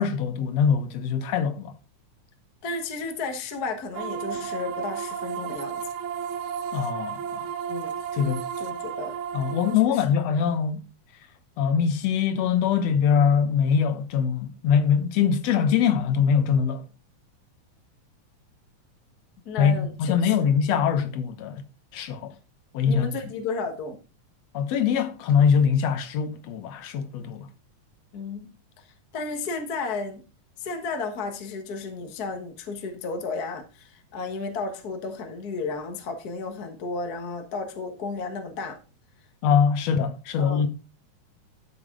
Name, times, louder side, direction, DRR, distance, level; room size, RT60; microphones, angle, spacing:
voice 1, 0.0-1.7 6.7-7.5 8.1-8.4 9.3-10.8 11.6-16.8 19.6-21.6 21.9-22.3 22.7-23.1 24.5-27.5 39.4-40.7, left 7 dB, 65° left, 1.8 m, -23 dB
voice 2, 2.6-5.8 7.7-7.9 8.6-9.2 9.9-10.0 19.4-20.5 22.8-24.0 28.1-28.5 28.8-28.9 29.1-30.2 30.6-38.8 40.4-40.7, left 4 dB, 45° left, 1.3 m, -33 dB
sound 1, 3.9-9.8, right 7 dB, 80° right, 1.2 m, -33 dB
12.5 x 6.9 x 3.7 m
omnidirectional pair, 3.6 m